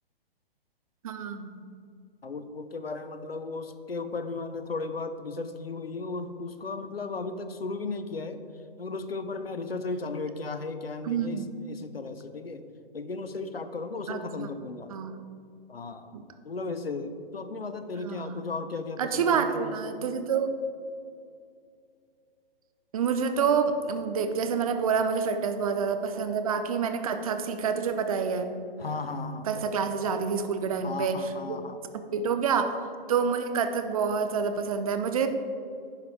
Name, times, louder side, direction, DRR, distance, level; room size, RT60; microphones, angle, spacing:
voice 1, 1.0-1.6 11.0-11.6 14.1-14.5 14.9-15.1 16.1-16.2 18.0-18.4 19.0-20.5 22.9-28.5 29.5-31.6 32.1-32.8 33.1-35.3, right 6 dB, 40° right, 8 dB, 0.6 m, -28 dB
voice 2, 2.2-8.4 8.8-12.6 12.9-14.9 15.7-19.8 23.7-24.0 24.5-24.8 28.8-30.1 30.8-31.8, left 3 dB, 80° left, 10 dB, 0.7 m, -36 dB
10.5 x 4.9 x 4.7 m, 2.4 s
figure-of-eight pair, 120°, 29 cm